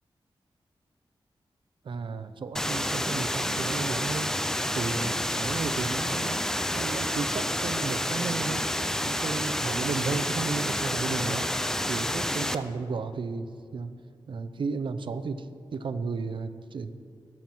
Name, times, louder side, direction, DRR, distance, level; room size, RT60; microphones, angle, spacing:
voice 1, 1.8-4.3 4.7-6.4 6.7-8.7 9.0-11.5 11.9-13.9 14.3-15.5 15.7-16.9, right 4 dB, 65° right, 10 dB, 0.7 m, -33 dB
sound 1, 2.6-12.6, left 1 dB, 5° left, 0.5 m, -29 dB
18.5 x 7.3 x 4.6 m, 2.3 s
wide cardioid pair, 110°, 9 cm